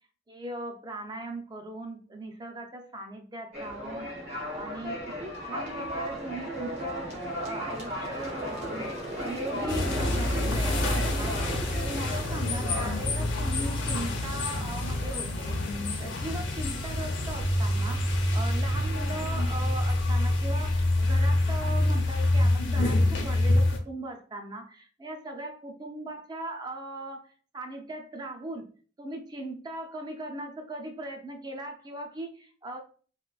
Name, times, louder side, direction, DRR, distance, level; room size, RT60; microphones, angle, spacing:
voice 1, 0.3-8.9 9.2-28.7 29.0-32.8, right 1 dB, 20° right, 3 dB, 0.4 m, -39 dB
sound 1, 3.5-22.4, equal, 55° right, 1.2 m, -37 dB
sound 2, 9.7-23.8, left 1 dB, 75° left, 0.7 m, -26 dB
3.6 x 2.5 x 2.3 m, 0.41 s
head